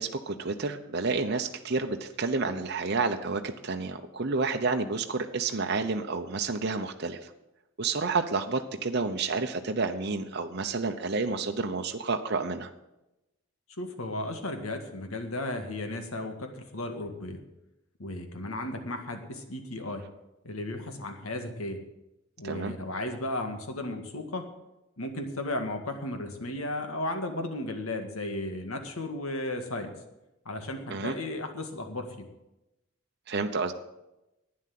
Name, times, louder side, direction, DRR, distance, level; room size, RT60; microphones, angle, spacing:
voice 1, 0.0-7.3 7.8-12.7 22.4-22.7 30.9-31.1 33.3-33.7, right 4 dB, 50° right, 5 dB, 0.8 m, -30 dB
voice 2, 13.8-17.4 18.0-20.0 20.4-21.8 22.4-24.5 25.0-30.0 30.5-32.2, left 1 dB, 80° left, 6 dB, 1.9 m, -35 dB
11.5 x 9.7 x 7.7 m, 0.94 s
head